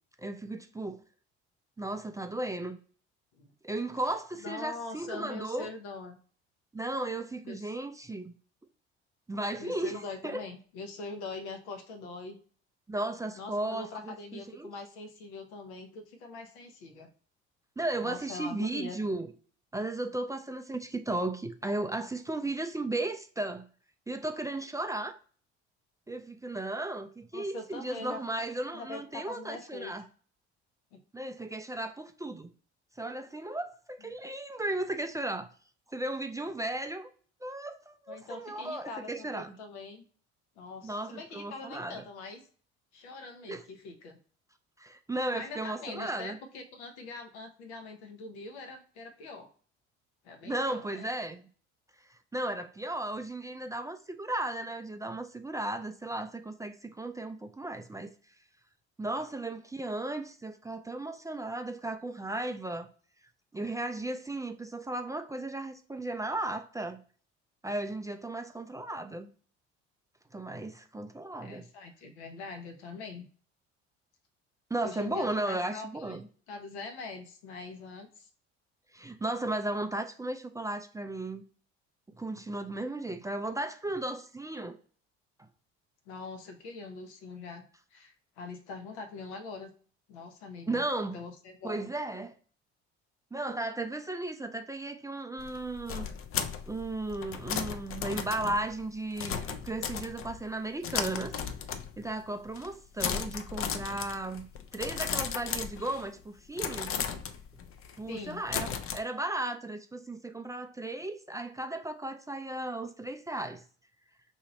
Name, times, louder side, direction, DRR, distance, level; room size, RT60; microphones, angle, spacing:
voice 1, 0.2-1.0 1.8-2.8 3.6-5.7 6.7-8.3 9.3-10.0 10.2-10.4 12.9-14.7 17.8-19.3 19.7-23.7 24.1-25.2 26.1-30.0 31.1-32.5 33.0-35.5 35.9-37.1 37.4-39.6 40.8-42.0 43.5-43.7 44.8-46.4 50.4-51.4 52.1-58.1 59.0-62.9 63.5-67.0 67.6-69.3 70.3-71.7 74.7-76.3 78.9-81.4 82.2-84.8 90.7-91.2 91.6-92.3 93.3-96.1 96.7-101.4 102.0-104.5 104.7-107.0 108.0-113.6, right 2 dB, 10° right, 0.4 m, -35 dB
voice 2, 4.4-6.2 7.4-7.7 9.6-12.4 13.3-17.1 18.0-19.0 27.3-28.2 28.7-29.9 30.9-31.0 38.1-40.0 40.6-42.5 42.9-44.2 45.3-49.5 50.2-51.1 71.4-73.3 74.8-78.3 86.1-87.6 87.9-89.7 90.1-91.9 108.1-108.4, left 3 dB, 80° left, 0.9 m, -43 dB
sound 1, 95.4-100.5 100.8-102.2 102.5-102.7 103.0-106.2 106.6-109.0, left 7 dB, 40° left, 0.5 m, -36 dB
2.8 x 2.6 x 4.2 m
hypercardioid pair, 60°, 34 cm